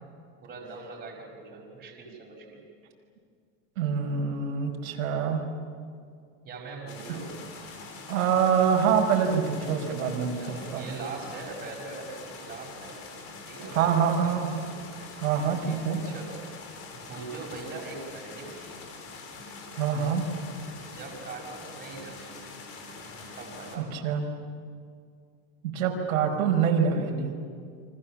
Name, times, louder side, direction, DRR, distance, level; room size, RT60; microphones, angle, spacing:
voice 1, 0.4-2.6 6.4-7.4 10.3-13.0 13.5-14.4 15.7-16.4 16.9-18.5 20.7-22.4 23.4-23.9, right 4 dB, 20° right, -1 dB, 5.3 m, -41 dB
voice 2, 3.8-5.4 8.1-10.9 13.7-14.6 15.2-16.0 19.7-20.2 23.8-24.2 25.6-27.3, right 7 dB, 90° right, 1 dB, 5.2 m, -25 dB
sound 1, 6.9-23.8, left 4 dB, 35° left, 4.4 m, -44 dB
29.5 x 25.0 x 7.5 m, 2.2 s
supercardioid pair, 160°, 40 cm